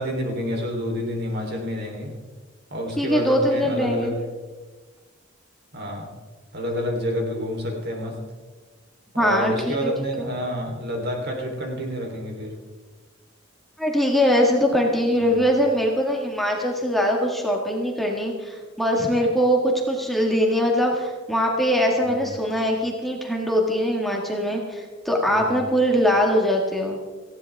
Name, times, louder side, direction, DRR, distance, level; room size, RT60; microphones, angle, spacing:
voice 1, 0.0-2.1 2.7-4.1 5.7-6.1 6.5-8.1 9.1-12.5 15.2-15.4 22.0-22.3 25.3-25.7, equal, 55° right, 1 dB, 3.6 m, -29 dB
voice 2, 3.0-4.2 9.2-9.9 10.2-10.3 13.8-27.0, equal, ahead, 0 dB, 1.8 m, -22 dB
19.0 x 15.5 x 3.5 m, 1.3 s
head